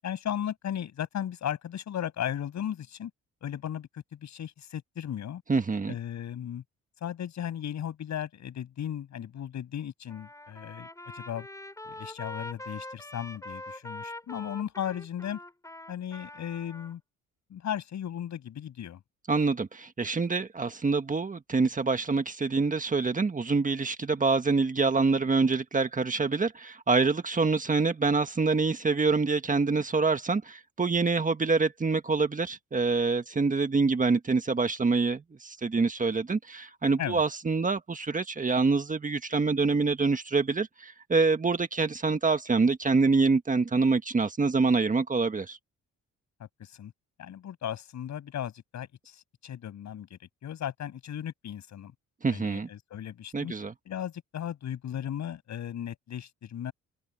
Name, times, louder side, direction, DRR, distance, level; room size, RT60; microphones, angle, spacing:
voice 1, 0.0-3.1 3.4-5.4 5.9-6.6 7.0-10.9 11.1-11.5 11.9-15.4 15.9-17.0 17.5-19.0 37.0-37.2 46.4-46.9 47.2-51.9 52.3-53.5 53.8-56.7, left 10 dB, 65° left, 7.9 m, -36 dB
voice 2, 5.5-6.0 19.3-45.6 52.2-52.7 53.3-53.7, right 4 dB, 25° right, 1.5 m, -26 dB
Trumpet, 10.1-16.9, left 1 dB, 10° left, 5.4 m, -43 dB
cardioid pair, 90°, 30 cm